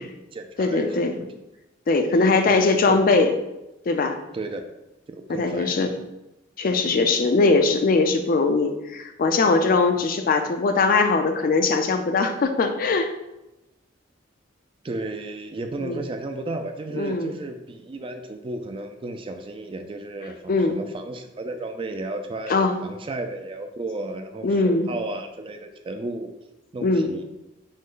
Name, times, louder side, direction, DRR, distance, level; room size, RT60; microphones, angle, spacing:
voice 1, 0.0-1.4 2.4-3.0 4.3-4.7 5.1-6.0 14.8-26.3 26.7-27.2, right 2 dB, 25° right, 6 dB, 0.3 m, -34 dB
voice 2, 0.6-1.1 1.9-3.3 3.9-4.2 5.3-5.9 6.6-13.1 15.8-16.0 17.0-17.3 20.5-20.8 22.5-22.7 24.4-24.9 26.8-27.1, left 3 dB, 50° left, 7 dB, 0.4 m, -21 dB
5.2 x 2.1 x 3.8 m, 0.94 s
head